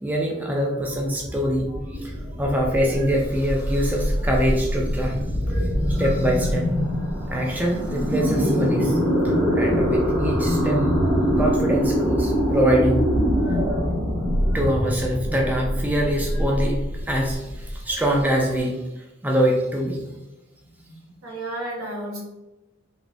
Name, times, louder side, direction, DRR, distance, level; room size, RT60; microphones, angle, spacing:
voice 1, 0.0-6.7 7.3-9.0 9.2-10.8 11.4-13.1 14.5-20.0, equal, 10° right, -1 dB, 0.3 m, -24 dB
sound 1, 0.7-18.5, equal, 50° right, 1.2 m, -24 dB
voice 2, 20.9-22.2, right 1 dB, 75° right, -4 dB, 1.1 m, -33 dB
3.3 x 2.9 x 2.5 m, 1.0 s
head